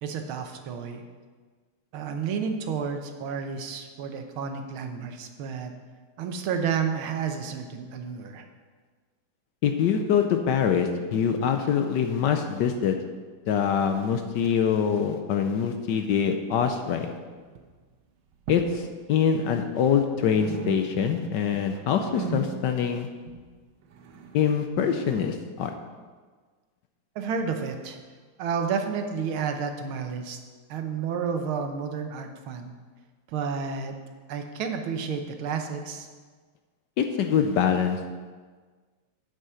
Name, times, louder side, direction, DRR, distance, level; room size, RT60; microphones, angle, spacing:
voice 1, 0.0-1.0 1.9-5.7 6.2-8.4 27.2-28.0 28.4-30.4 30.7-32.7 33.3-33.9 34.3-36.1, right 6 dB, 85° right, 5 dB, 1.7 m, -31 dB
voice 2, 9.6-12.9 13.5-17.1 18.5-23.1 24.3-25.7 37.0-38.1, left 7 dB, 70° left, 6 dB, 1.1 m, -24 dB
sound 1, 16.5-17.2 17.4-17.8 18.3-18.9 19.2-20.1 20.3-21.3 21.6-25.3, right 7 dB, 65° right, 1.3 m, -39 dB
7.9 x 7.6 x 5.6 m, 1.5 s
omnidirectional pair, 2.2 m